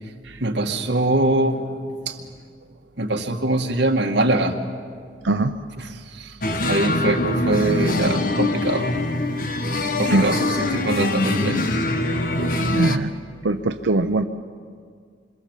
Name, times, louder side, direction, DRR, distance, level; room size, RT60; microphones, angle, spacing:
voice 1, 0.4-2.2 3.0-4.6 5.8-6.4 6.6-8.9 10.0-11.7, right 2 dB, 70° right, 2 dB, 2.2 m, -23 dB
sound 1, 6.4-13.0, left 2 dB, 50° left, 1.3 m, -23 dB
voice 2, 10.1-10.4 12.3-13.1 13.4-14.2, right 2 dB, 90° right, 6 dB, 0.8 m, -22 dB
27.5 x 25.5 x 7.5 m, 2.1 s
head